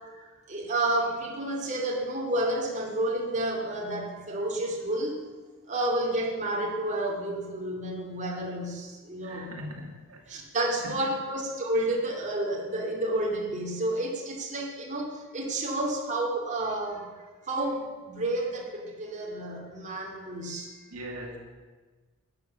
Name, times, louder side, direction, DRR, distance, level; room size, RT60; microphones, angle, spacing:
voice 1, 0.5-5.2 5.7-9.5 10.3-17.1 17.5-20.7, right 1 dB, 35° right, -1 dB, 2.5 m, -30 dB
voice 2, 9.2-10.4 10.8-11.1 20.9-21.4, equal, 80° right, 0 dB, 2.2 m, -40 dB
13.0 x 9.2 x 6.9 m, 1.4 s
head